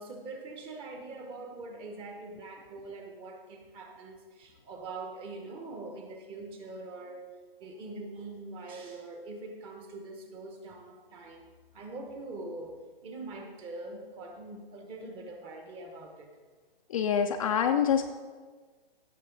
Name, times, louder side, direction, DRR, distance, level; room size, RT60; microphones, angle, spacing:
voice 1, 0.0-7.2 7.6-11.4 11.7-16.3, right 2 dB, 20° right, 4 dB, 1.1 m, -43 dB
voice 2, 16.9-18.1, left 8 dB, 35° left, 5 dB, 0.5 m, -26 dB
16.0 x 6.6 x 3.9 m, 1.5 s
hypercardioid pair, 145°, 29 cm